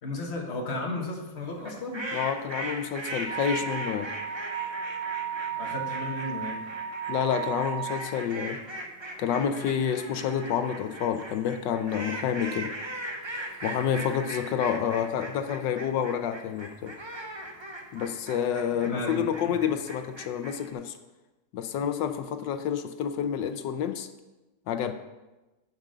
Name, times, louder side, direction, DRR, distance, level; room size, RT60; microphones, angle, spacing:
voice 1, 0.0-2.1 5.6-6.6 18.8-19.2, left 2 dB, 35° left, 0 dB, 1.7 m, -34 dB
sound 1, 1.6-20.7, right 1 dB, 25° right, 0.6 m, -39 dB
voice 2, 2.1-4.1 7.1-8.6 9.2-12.7 13.6-16.9 17.9-20.9 21.5-24.1 24.7-24.9, left 8 dB, 75° left, 9 dB, 1.3 m, -29 dB
Wind instrument woodwind instrument, 3.3-8.1, right 8 dB, 75° right, 2.6 m, -35 dB
9.3 x 6.1 x 6.6 m, 1.1 s
omnidirectional pair, 2.0 m